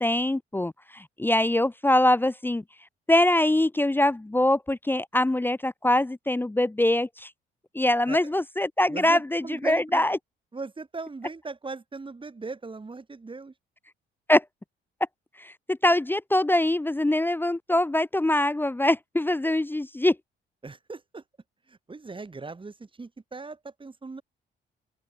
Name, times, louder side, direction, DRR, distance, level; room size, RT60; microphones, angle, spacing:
voice 1, 0.0-2.6 3.1-7.3 7.7-10.2 14.3-14.4 15.4-20.2, left 1 dB, 10° left, 0.8 m, -23 dB
voice 2, 8.9-10.1 10.5-13.5 20.6-21.2 21.7-24.2, right 3 dB, 25° right, 6.9 m, -38 dB
open air
cardioid pair, 90°, 20 cm